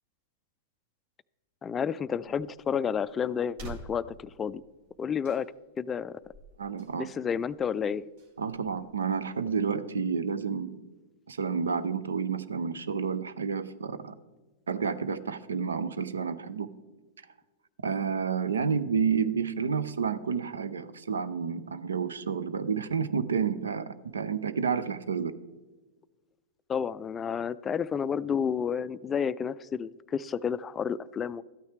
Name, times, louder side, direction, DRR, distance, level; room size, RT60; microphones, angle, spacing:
voice 1, 1.6-4.6 5.0-5.5 5.8-6.1 7.0-8.1 26.7-31.4, left 7 dB, 25° left, 16 dB, 0.3 m, -30 dB
sound 1, 2.1-9.6, right 3 dB, 60° right, 1.5 m, -51 dB
voice 2, 6.6-7.1 8.4-10.8 11.3-14.1 14.7-16.7 17.8-25.3, right 6 dB, 80° right, 14 dB, 0.5 m, -30 dB
13.0 x 9.2 x 3.3 m, 1.3 s
hypercardioid pair, 100°, 0 cm